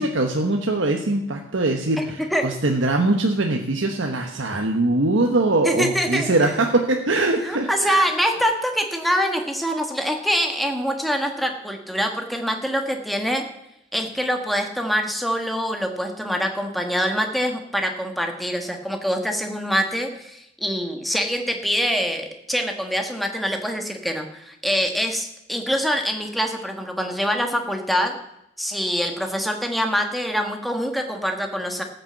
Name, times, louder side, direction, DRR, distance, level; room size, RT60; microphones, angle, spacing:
voice 1, 0.0-8.1, right 2 dB, 70° right, 2 dB, 1.1 m, -22 dB
voice 2, 5.6-6.3 7.4-13.4 13.9-28.2 28.6-31.8, equal, ahead, 4 dB, 1.3 m, -24 dB
14.0 x 6.7 x 7.8 m, 0.84 s
head